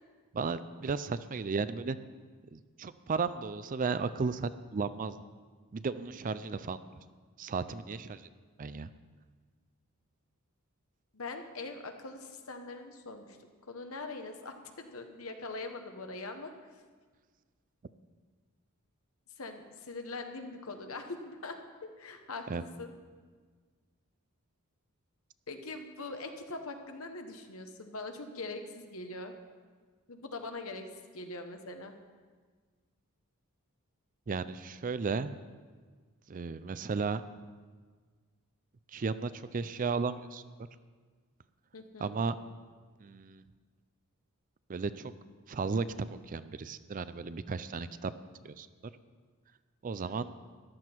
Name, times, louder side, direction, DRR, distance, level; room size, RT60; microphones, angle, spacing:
voice 1, 0.3-2.0 2.5-5.2 5.7-6.8 7.4-8.2 8.6-8.9 22.5-22.6 34.3-35.4 36.3-37.2 38.9-40.4 42.0-42.4 43.0-43.4 44.7-45.1 45.5-48.1 48.4-48.7 49.8-50.3, right 4 dB, 40° right, 14 dB, 0.4 m, -34 dB
voice 2, 11.1-13.4 13.7-16.5 19.4-21.6 22.0-22.9 25.5-29.3 30.1-31.9 41.7-42.1 50.0-50.2, left 3 dB, 70° left, 6 dB, 1.2 m, -42 dB
14.0 x 11.5 x 4.5 m, 1.5 s
head